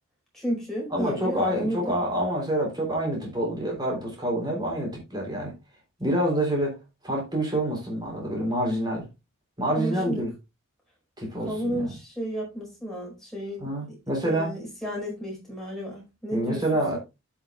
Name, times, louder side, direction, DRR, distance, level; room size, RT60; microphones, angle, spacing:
voice 1, 0.3-1.8 9.8-10.2 11.4-14.0 14.2-16.6 16.9-17.0, equal, ahead, 5.0 m, -32 dB
voice 2, 0.9-5.5 6.0-6.8 7.0-9.1 9.6-10.3 11.2-11.9 13.6-14.5 16.3-17.0, right 1 dB, 20° right, 3.6 m, -27 dB
13.0 x 6.0 x 2.4 m
head